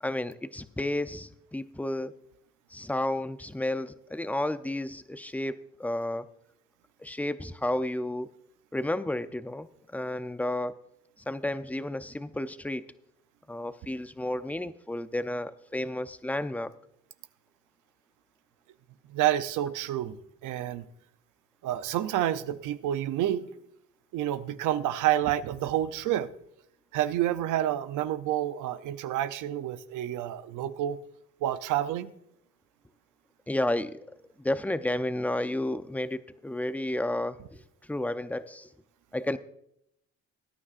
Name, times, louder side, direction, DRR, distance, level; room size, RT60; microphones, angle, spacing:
voice 1, 0.0-2.1 2.7-6.3 7.0-8.3 8.7-10.7 11.3-12.8 13.5-16.7 33.5-34.0 34.4-37.4 37.9-38.7 39.1-39.4, left 1 dB, 5° left, 12 dB, 0.5 m, -31 dB
voice 2, 19.1-20.2 20.4-20.8 21.6-23.4 24.1-26.3 26.9-31.0 31.4-32.1, right 12 dB, 90° right, 12 dB, 0.7 m, -29 dB
19.5 x 9.8 x 2.5 m, 0.76 s
cardioid pair, 90°, 30 cm